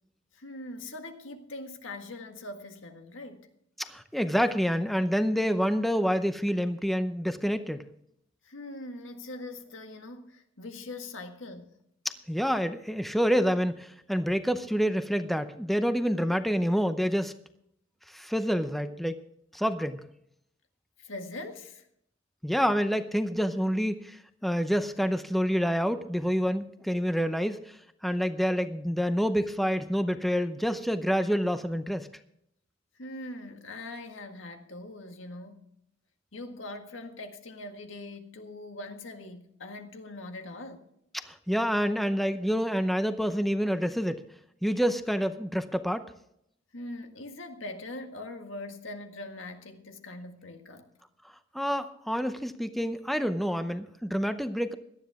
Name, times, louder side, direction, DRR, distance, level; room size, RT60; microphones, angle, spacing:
voice 1, 0.3-3.5 8.4-11.7 21.0-21.9 33.0-35.7 36.3-40.9 46.7-50.9, left 2 dB, 85° left, 1.8 m, -42 dB
voice 2, 3.8-7.8 12.3-17.3 18.1-19.2 19.5-20.0 22.4-27.8 28.0-32.1 41.2-44.2 44.6-46.0 51.5-54.7, equal, ahead, 0.7 m, -27 dB
17.5 x 12.0 x 3.5 m
head